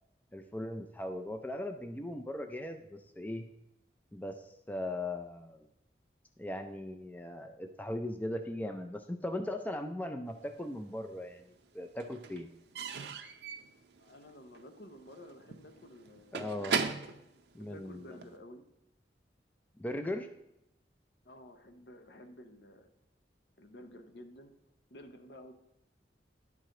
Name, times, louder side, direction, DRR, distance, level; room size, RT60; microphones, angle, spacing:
voice 1, 0.3-3.5 4.1-5.7 6.4-11.4 11.7-12.5 16.3-16.8 17.5-18.0 19.8-20.3, left 1 dB, 10° left, 6 dB, 0.4 m, -38 dB
Slam / Squeak / Wood, 10.5-11.3 11.6-18.4, right 5 dB, 75° right, 0.6 m, -39 dB
voice 2, 14.0-16.5 17.6-18.6 21.2-22.9 23.6-24.5 24.9-25.5, left 1 dB, 75° left, 6 dB, 0.8 m, -52 dB
11.0 x 4.8 x 3.8 m, 0.84 s
head